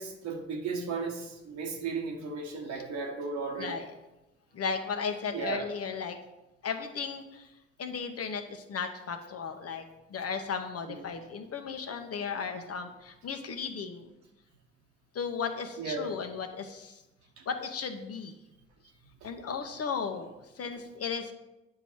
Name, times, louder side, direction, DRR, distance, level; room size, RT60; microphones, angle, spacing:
voice 1, 0.0-3.8 5.3-5.7 10.9-11.0 15.8-16.1 17.4-17.5, right 4 dB, 70° right, 2 dB, 1.3 m, -35 dB
voice 2, 4.5-6.2 6.6-7.5 7.8-9.8 10.1-14.1 15.1-17.0 17.5-18.3 19.2-20.3 20.6-21.3, left 5 dB, 55° left, 6 dB, 1.2 m, -35 dB
8.9 x 5.7 x 4.6 m, 0.98 s
hypercardioid pair, 45°, 29 cm